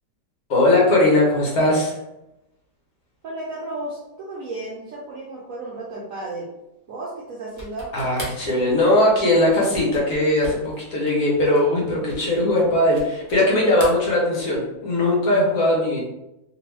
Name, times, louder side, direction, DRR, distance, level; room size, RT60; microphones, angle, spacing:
voice 1, 0.5-2.0 7.9-16.0, left 1 dB, 60° left, -3 dB, 1.2 m, -19 dB
voice 2, 3.2-6.5 6.9-7.9, right 2 dB, 70° right, -4 dB, 0.8 m, -33 dB
sound 1, 7.5-13.5 13.7-14.7, left 1 dB, 45° left, 0.5 m, -39 dB
2.9 x 2.3 x 3.1 m, 0.91 s
omnidirectional pair, 1.9 m